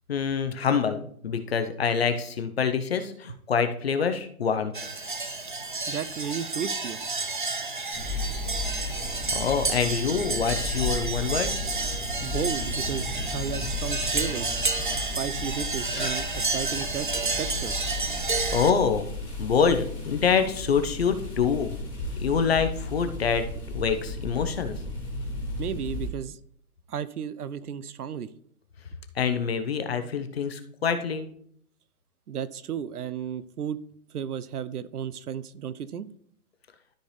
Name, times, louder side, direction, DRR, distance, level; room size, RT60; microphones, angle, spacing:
voice 1, 0.1-4.7 9.3-11.5 16.0-16.1 18.5-19.1 19.4-21.8 22.2-23.5 23.7-24.8 29.1-31.3, left 6 dB, 45° left, 9 dB, 0.8 m, -26 dB
sound 1, 4.7-18.7, right 3 dB, 35° right, 0.4 m, -31 dB
voice 2, 5.9-7.0 12.2-14.5 15.0-17.9 25.6-26.4 26.9-28.3 32.3-33.8 34.1-36.1, right 8 dB, 85° right, 17 dB, 0.8 m, -34 dB
sound 2, 7.9-26.1, left 2 dB, 5° left, 1.2 m, -34 dB
13.0 x 4.4 x 3.3 m, 0.64 s
hypercardioid pair, 175°, 44 cm